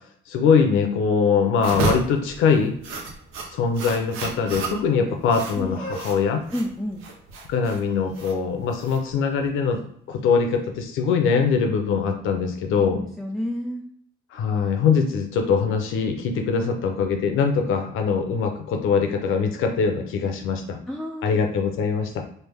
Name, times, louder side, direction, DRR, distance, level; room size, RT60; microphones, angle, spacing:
voice 1, 0.3-2.7 3.5-6.4 7.5-9.8 10.1-13.0 14.3-20.8 21.2-22.3, left 5 dB, 80° left, 5 dB, 0.6 m, -22 dB
sound 1, 1.6-9.5, right 3 dB, 80° right, 0.8 m, -32 dB
sound 2, 5.6-11.5, right 1 dB, 45° right, 1.0 m, -44 dB
voice 2, 6.5-7.0 12.8-13.8 20.9-21.4, equal, ahead, 0 dB, 0.3 m, -30 dB
3.3 x 2.1 x 3.5 m, 0.65 s
cardioid pair, 90°, 21 cm